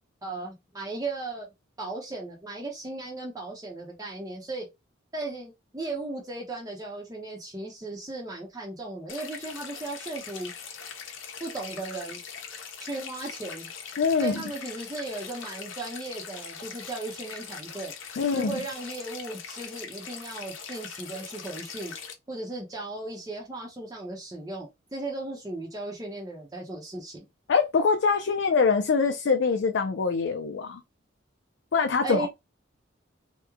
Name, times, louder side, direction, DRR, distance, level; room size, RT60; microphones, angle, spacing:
voice 1, 0.2-1.5 1.8-4.7 5.1-10.5 11.4-12.2 12.8-13.7 14.2-17.9 18.2-21.9 22.3-27.3 32.0-32.3, right 2 dB, 20° right, 0.7 m, -36 dB
sound 1, 9.1-22.1, left 6 dB, 85° left, 0.8 m, -41 dB
voice 2, 14.0-14.4 18.2-18.6 27.5-30.8 31.7-32.3, left 5 dB, 60° left, 0.4 m, -24 dB
3.0 x 2.1 x 3.5 m
head